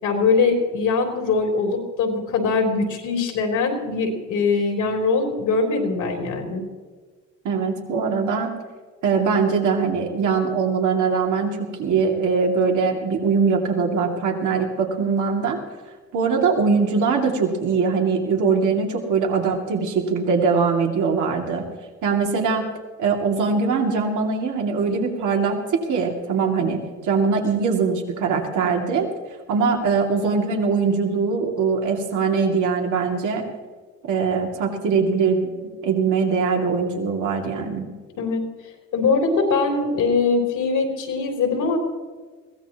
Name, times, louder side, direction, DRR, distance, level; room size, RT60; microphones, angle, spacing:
voice 1, 0.0-6.6 38.2-38.4 38.9-41.8, left 4 dB, 85° left, 2 dB, 3.4 m, -22 dB
voice 2, 7.4-8.5 9.0-15.6 16.1-21.6 22.0-22.7 23.0-29.1 29.5-33.5 34.0-35.4 35.8-37.9, right 5 dB, 80° right, 1 dB, 2.5 m, -22 dB
21.5 x 16.0 x 3.0 m, 1.5 s
cardioid pair, 90°, 30 cm